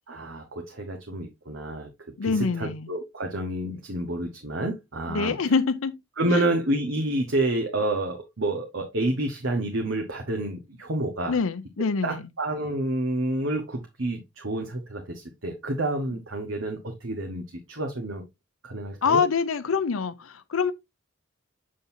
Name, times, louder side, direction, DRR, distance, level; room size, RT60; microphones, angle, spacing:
voice 1, 0.1-1.9 2.2-5.3 6.2-11.4 12.0-18.2 18.6-19.2, right 1 dB, 65° right, 1.3 m, -29 dB
voice 2, 2.2-2.9 5.1-5.9 6.3-6.5 11.3-12.2 19.0-20.7, left 5 dB, 80° left, 0.6 m, -25 dB
7.6 x 6.5 x 2.7 m
head